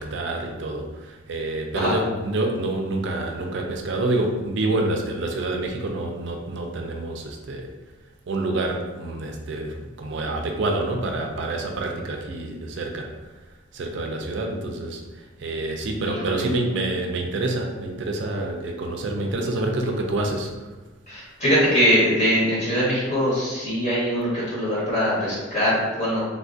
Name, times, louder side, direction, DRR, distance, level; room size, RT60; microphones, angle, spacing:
voice 1, 0.0-7.7 8.3-13.1 13.7-20.7, right 2 dB, 65° right, 2 dB, 0.4 m, -27 dB
voice 2, 16.1-16.5 21.1-26.2, equal, 35° left, -8 dB, 1.3 m, -22 dB
3.5 x 2.4 x 2.5 m, 1.2 s
head